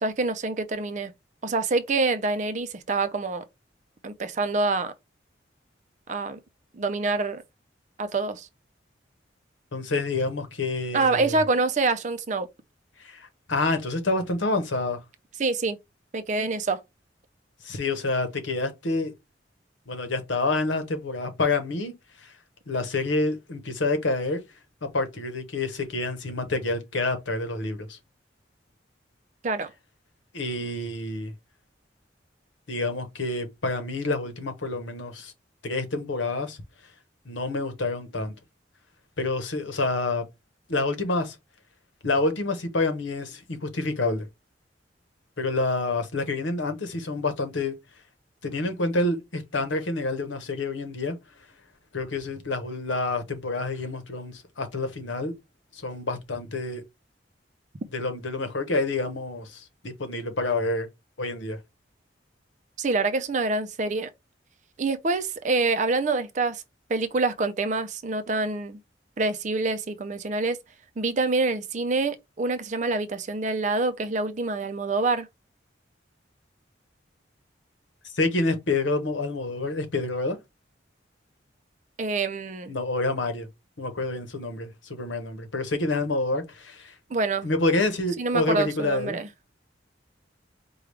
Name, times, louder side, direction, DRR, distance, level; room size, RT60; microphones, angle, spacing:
voice 1, 0.0-1.1 1.4-3.4 4.0-4.9 6.1-6.4 6.7-7.4 8.0-8.5 10.9-12.5 15.4-15.8 16.1-16.8 29.4-29.7 62.8-64.1 64.8-66.6 66.9-68.8 69.2-70.6 71.0-75.3 82.0-82.7 87.1-87.5 88.2-89.3, right 3 dB, 40° right, 0.5 m, -26 dB
voice 2, 9.7-11.4 13.0-15.0 17.6-19.1 19.9-21.9 22.2-22.3 22.7-24.4 24.8-28.0 30.3-31.3 32.7-35.3 35.6-36.6 37.3-38.3 39.2-40.2 40.7-41.4 42.0-44.3 45.4-47.8 48.4-51.2 51.9-55.3 55.7-56.8 57.9-60.9 61.2-61.6 78.1-80.4 82.7-83.5 83.8-86.9 87.4-89.2, left 2 dB, 90° left, 1.0 m, -28 dB
4.9 x 2.3 x 3.2 m
head